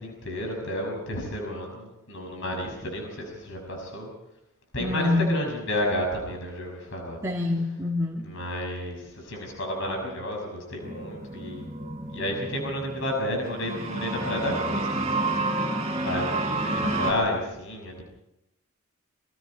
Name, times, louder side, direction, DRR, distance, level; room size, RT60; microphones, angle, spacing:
voice 1, 0.0-4.1 4.7-7.2 8.2-11.7 12.1-15.5 15.8-18.0, left 1 dB, 60° left, 2 dB, 6.3 m, -31 dB
voice 2, 4.8-5.3 7.2-8.3, left 2 dB, 15° right, -2 dB, 2.5 m, -26 dB
sound 1, 10.8-17.1, right 2 dB, 30° right, 6.0 m, -30 dB
28.0 x 24.5 x 4.4 m, 0.86 s
head